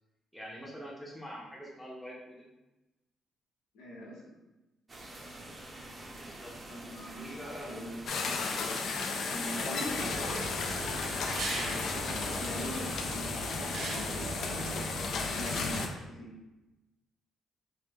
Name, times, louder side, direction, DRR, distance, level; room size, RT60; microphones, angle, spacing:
voice 1, 0.3-2.5 6.1-6.5 7.1-7.7 9.4-10.8 11.4-11.6, equal, 10° left, -4 dB, 0.7 m, -45 dB
voice 2, 3.7-4.3 6.7-7.4 7.7-8.0 9.3-10.2 11.7-13.3 13.7-14.8 15.3-16.4, equal, 90° left, -3 dB, 0.8 m, -42 dB
sound 1, 4.9-13.2, right 1 dB, 25° right, 0.5 m, -46 dB
sound 2, 8.1-15.9, left 4 dB, 65° left, 0.3 m, -34 dB
sound 3, 9.8-15.9, right 2 dB, 70° right, 0.6 m, -39 dB
3.1 x 2.1 x 3.4 m, 1.0 s
cardioid pair, 90°, 0 cm